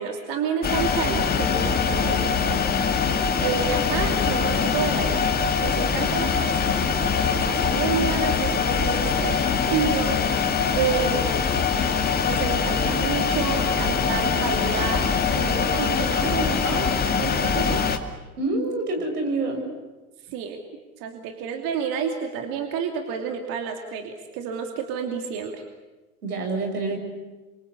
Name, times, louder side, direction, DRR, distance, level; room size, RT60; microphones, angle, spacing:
voice 1, 0.0-2.6 3.4-5.3 5.6-6.6 7.3-9.4 9.7-11.3 12.3-16.9 17.2-17.9 20.3-20.6 21.0-25.6, right 6 dB, 50° right, 4 dB, 3.0 m, -30 dB
sound 1, 0.6-18.0, left 6 dB, 20° left, 2.4 m, -23 dB
voice 2, 18.4-19.6 26.2-27.0, right 2 dB, 85° right, 3 dB, 7.3 m, -26 dB
27.0 x 25.0 x 8.4 m, 1.2 s
hypercardioid pair, 100°, 45 cm